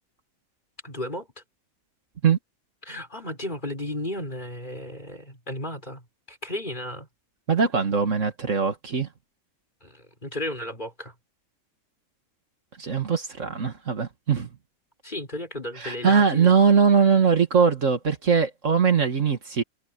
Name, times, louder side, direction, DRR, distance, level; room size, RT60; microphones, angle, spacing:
voice 1, 0.8-1.3 2.8-7.1 9.8-11.1 15.0-16.5, left 1 dB, 35° left, 5.8 m, -34 dB
voice 2, 7.5-9.1 12.8-14.5 15.8-19.6, right 6 dB, 60° right, 2.1 m, -21 dB
omnidirectional pair, 1.5 m